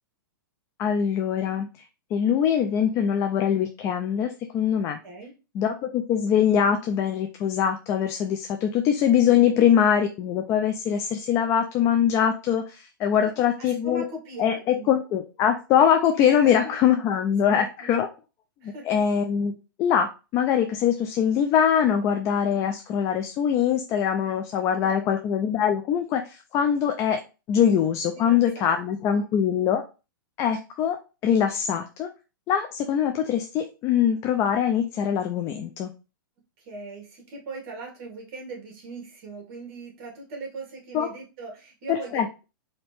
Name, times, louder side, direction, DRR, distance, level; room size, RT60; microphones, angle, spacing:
voice 1, 0.8-1.7 2.1-5.0 5.6-14.0 14.4-18.1 18.6-27.2 27.5-29.8 30.4-31.0 31.2-32.1 32.5-35.9 40.9-41.1 41.9-42.4, left 8 dB, 25° left, 5 dB, 0.3 m, -23 dB
voice 2, 5.0-5.3 9.4-9.7 13.2-14.9 16.3-16.8 17.5-17.9 18.6-19.0 24.5-25.1 28.1-28.8 29.1-29.3 36.6-42.3, right 2 dB, 45° right, 1 dB, 2.0 m, -40 dB
4.1 x 2.8 x 3.4 m, 0.31 s
hypercardioid pair, 150°, 12 cm